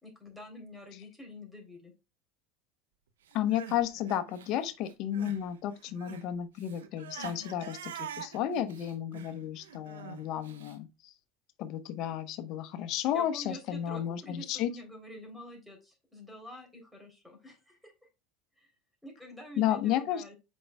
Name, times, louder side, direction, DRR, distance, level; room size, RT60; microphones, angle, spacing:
voice 1, 0.0-1.9 7.2-7.5 13.1-17.9 18.6-18.7 19.0-20.4, left 1 dB, ahead, 3.4 m, -47 dB
voice 2, 3.3-11.1 11.6-14.7 19.6-20.2, left 11 dB, 60° left, 1.0 m, -32 dB
Crying sobbing, 3.3-5.5 5.7-10.8, right 9 dB, 90° right, 0.8 m, -45 dB
7.7 x 5.4 x 2.3 m
hypercardioid pair, 90°, 0 cm